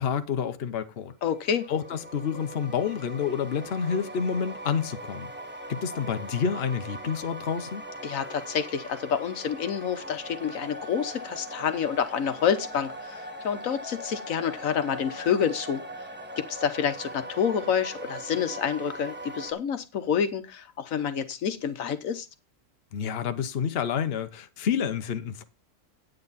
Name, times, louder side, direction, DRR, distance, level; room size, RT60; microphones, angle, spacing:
voice 1, 0.0-1.1 1.7-5.3 5.7-7.8 22.9-25.4, left 7 dB, 50° left, 1.0 m, -29 dB
voice 2, 1.2-1.7 8.0-15.8 16.4-22.3, left 7 dB, 80° left, 1.3 m, -28 dB
sound 1, 1.3-19.5, right 1 dB, 10° right, 1.2 m, -40 dB
9.4 x 9.0 x 4.0 m
omnidirectional pair, 1.4 m